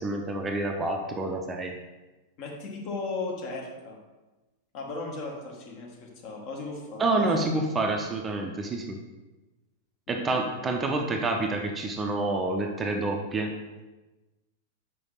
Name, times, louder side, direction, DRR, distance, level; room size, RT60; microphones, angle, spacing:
voice 1, 0.0-1.8 7.0-9.0 10.1-13.5, right 2 dB, 20° right, 3 dB, 0.7 m, -28 dB
voice 2, 2.4-4.0 4.7-7.5 10.1-10.3, left 3 dB, 45° left, -1 dB, 1.6 m, -36 dB
5.7 x 5.2 x 4.0 m, 1.1 s
figure-of-eight pair, 95°, 0 cm